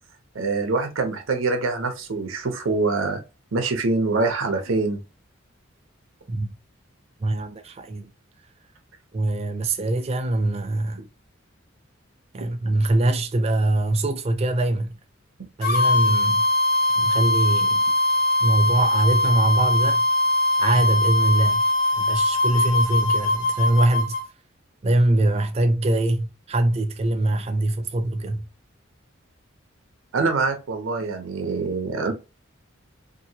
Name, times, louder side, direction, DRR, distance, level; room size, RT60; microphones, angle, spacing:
voice 1, 0.3-3.2 3.5-5.0 30.1-32.1, right 3 dB, 80° right, 0.6 m, -24 dB
voice 2, 7.2-8.1 9.1-11.0 12.3-15.0 15.6-16.5 17.0-17.8 18.4-20.0 20.6-21.7 22.0-24.2 24.8-28.5, right 1 dB, 30° right, 0.4 m, -23 dB
sound 1, 15.6-24.2, left 2 dB, 50° left, 0.6 m, -21 dB
2.8 x 2.6 x 2.7 m
head